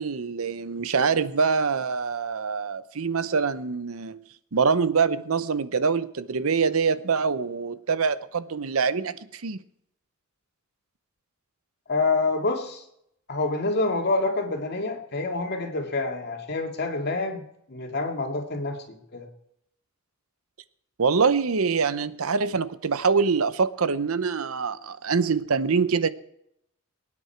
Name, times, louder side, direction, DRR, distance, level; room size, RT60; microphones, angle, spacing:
voice 1, 0.0-4.2 4.5-9.6 21.0-26.1, right 5 dB, 85° right, 15 dB, 0.7 m, -24 dB
voice 2, 11.9-12.8 13.3-17.4 17.7-19.3, left 3 dB, 50° left, 3 dB, 2.3 m, -27 dB
22.5 x 9.7 x 4.5 m, 0.77 s
head